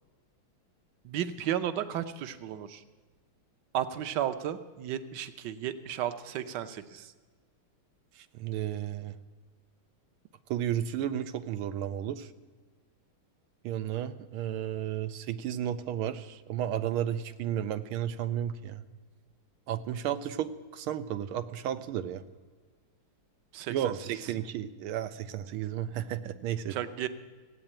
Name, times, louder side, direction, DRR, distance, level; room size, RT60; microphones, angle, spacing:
voice 1, 1.0-2.8 3.7-7.1 23.5-23.9 26.7-27.1, right 10 dB, 60° right, 11 dB, 1.3 m, -33 dB
voice 2, 8.4-9.2 10.5-12.3 13.6-18.8 19.7-22.2 23.7-26.8, right 10 dB, 85° right, 12 dB, 1.6 m, -33 dB
16.0 x 8.9 x 8.8 m, 1.4 s
omnidirectional pair, 2.3 m